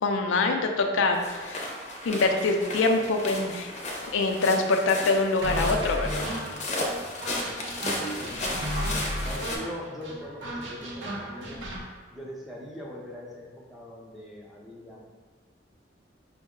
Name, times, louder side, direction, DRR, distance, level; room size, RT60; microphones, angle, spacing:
voice 1, 0.0-1.6 2.1-3.7 4.1-6.4, left 3 dB, 85° left, 4 dB, 0.4 m, -24 dB
sound 1, 1.1-9.6, left 1 dB, 40° left, 0.6 m, -34 dB
sound 2, 5.4-11.8, equal, 80° right, 0.7 m, -34 dB
voice 2, 7.9-8.9 9.2-11.7 12.1-15.1, equal, ahead, -4 dB, 0.6 m, -41 dB
5.2 x 2.0 x 3.6 m, 1.4 s
head